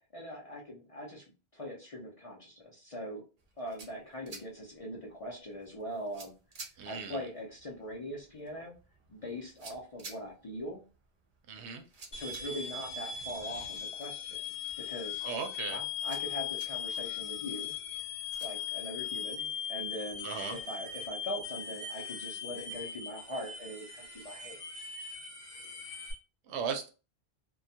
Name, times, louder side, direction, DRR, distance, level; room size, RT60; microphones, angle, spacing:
voice 1, 0.1-1.2 1.5-3.2 3.6-6.3 6.8-8.7 9.1-10.8 12.1-14.4 14.9-15.3 15.7-17.8 18.4-24.8, equal, 45° left, -3 dB, 0.5 m, -42 dB
sound 1, 3.4-18.5, right 3 dB, 45° right, 0.5 m, -55 dB
voice 2, 6.8-7.2 11.5-11.8 15.2-15.8 20.2-20.6 26.5-26.9, right 6 dB, 90° right, 6 dB, 0.8 m, -37 dB
sound 2, 12.1-26.1, left 7 dB, 65° left, 0.9 m, -39 dB
2.2 x 2.1 x 2.6 m, 0.33 s
omnidirectional pair, 1.1 m